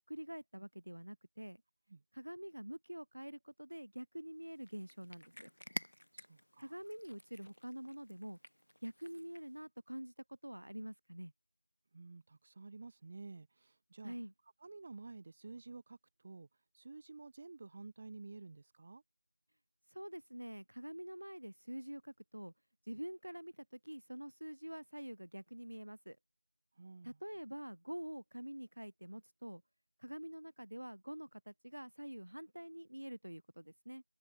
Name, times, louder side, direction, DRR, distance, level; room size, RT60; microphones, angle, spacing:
voice 1, 0.0-1.6 2.1-5.3 6.6-8.4 8.8-10.1 10.4-11.3 14.0-14.3 19.9-22.5 22.9-26.2 27.0-29.6 30.0-34.0, right 1 dB, 85° right, 3.3 m, -46 dB
Cat, 4.4-9.6, equal, 85° left, 3.3 m, -51 dB
voice 2, 6.1-6.7 11.9-14.2 14.6-16.5 16.7-19.0 26.8-27.2, right 3 dB, 20° right, 0.7 m, -51 dB
figure-of-eight pair, 175°, 0 cm